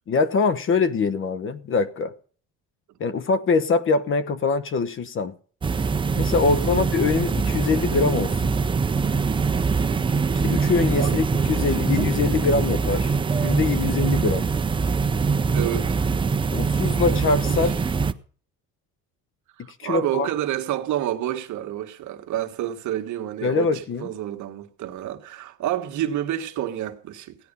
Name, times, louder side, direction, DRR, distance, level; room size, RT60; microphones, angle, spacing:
voice 1, 0.1-2.1 3.0-5.3 6.1-8.5 10.4-14.4 16.5-17.7 19.8-20.3 23.4-24.1, left 4 dB, 40° left, 1.0 m, -23 dB
sound 1, 5.6-18.1, right 5 dB, 15° right, 0.5 m, -23 dB
voice 2, 6.4-6.9 9.8-10.3 11.0-11.2 13.8-14.0 15.5-16.0 17.5-17.7 19.6-27.4, right 12 dB, 60° right, 1.6 m, -29 dB
16.0 x 10.0 x 5.4 m
cardioid pair, 150°, 34 cm